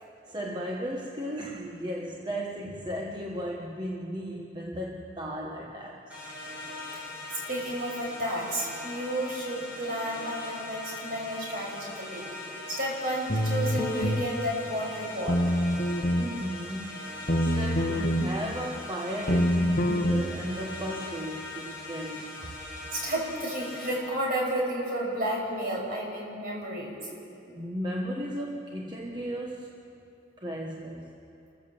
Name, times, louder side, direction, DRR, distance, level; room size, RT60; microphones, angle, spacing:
voice 1, 0.0-6.2 16.1-17.0 17.4-22.5 27.5-29.7 30.4-31.1, equal, 25° right, -1 dB, 1.3 m, -35 dB
sound 1, 6.1-23.9, left 2 dB, 10° right, 7.1 m, -41 dB
voice 2, 7.3-12.2 12.7-15.4 22.9-27.0, right 1 dB, 50° right, -3 dB, 6.2 m, -32 dB
sound 2, 13.3-14.3 15.3-16.3 17.3-18.3 19.3-20.3, equal, 45° left, 1.3 m, -25 dB
28.0 x 15.0 x 7.2 m, 2.7 s
head